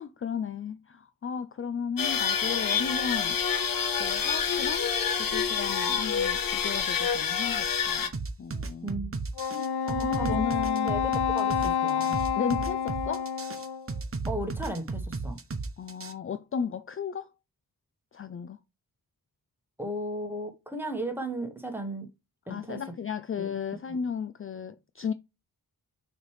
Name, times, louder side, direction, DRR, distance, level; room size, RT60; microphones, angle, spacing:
voice 1, 0.0-3.4 4.0-4.9 5.2-8.1 8.4-9.1 9.5-9.7 10.0-10.9 12.4-13.3 15.8-17.3 18.1-18.6 22.5-25.1, left 6 dB, 35° left, 0.4 m, -34 dB
sound 1, 2.0-8.1, left 7 dB, 60° left, 0.9 m, -27 dB
sound 2, 8.1-16.1, right 3 dB, 35° right, 1.0 m, -34 dB
Wind instrument woodwind instrument, 9.4-13.9, left 8 dB, 90° left, 0.6 m, -29 dB
voice 2, 9.9-10.4 10.8-12.2 14.3-15.4 19.8-22.1 22.5-22.8 23.4-23.5, right 1 dB, 5° right, 1.4 m, -35 dB
6.4 x 3.3 x 4.8 m
wide cardioid pair, 85°, 37 cm